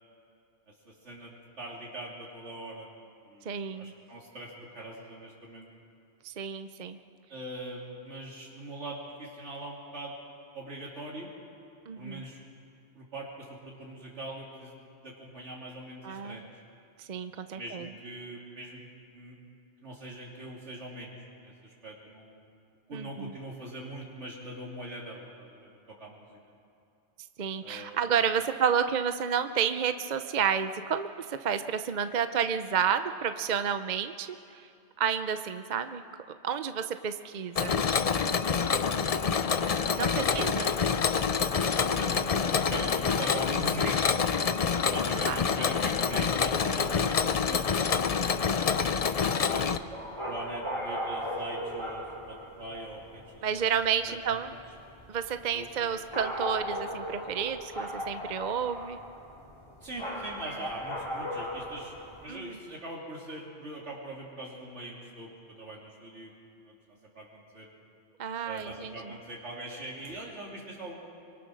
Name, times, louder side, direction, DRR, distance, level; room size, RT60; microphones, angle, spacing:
voice 1, 0.7-2.9 3.2-5.7 7.3-10.1 10.5-11.3 11.9-12.4 12.9-16.6 17.5-18.8 19.1-19.4 19.8-22.6 22.9-26.4 27.6-28.2 38.7-39.4 40.0-40.8 41.4-44.1 44.5-48.5 49.3-49.8 50.2-53.6 54.1-54.4 55.5-55.7 59.8-66.3 66.6-66.8 67.0-67.7 68.4-70.9, right 1 dB, 85° right, -4 dB, 3.2 m, -42 dB
voice 2, 3.4-3.9 6.2-7.0 11.9-12.2 16.0-16.4 17.0-17.9 22.9-23.4 27.4-34.7 35.0-36.0 36.4-37.7 39.9-40.7 45.1-45.4 53.4-54.5 55.1-59.0 62.3-62.6 68.2-69.1, right 7 dB, 50° right, 9 dB, 0.7 m, -30 dB
Mechanisms, 37.6-49.8, left 6 dB, 40° left, 0.6 m, -27 dB
sound 1, 49.7-62.3, equal, 25° left, 3.5 m, -38 dB
24.0 x 23.5 x 6.3 m, 2.6 s
omnidirectional pair, 1.2 m